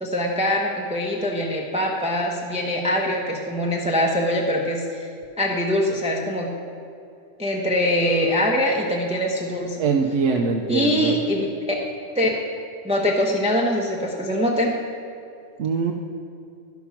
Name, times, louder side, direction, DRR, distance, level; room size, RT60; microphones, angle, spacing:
voice 1, 0.0-5.1 5.4-6.5 7.4-9.8 10.7-11.5 12.1-12.3 12.8-14.7, left 1 dB, 5° right, -1 dB, 0.7 m, -23 dB
voice 2, 9.8-11.1 15.6-15.9, right 5 dB, 85° right, 1 dB, 1.0 m, -22 dB
11.5 x 6.0 x 5.9 m, 2.5 s
omnidirectional pair, 1.2 m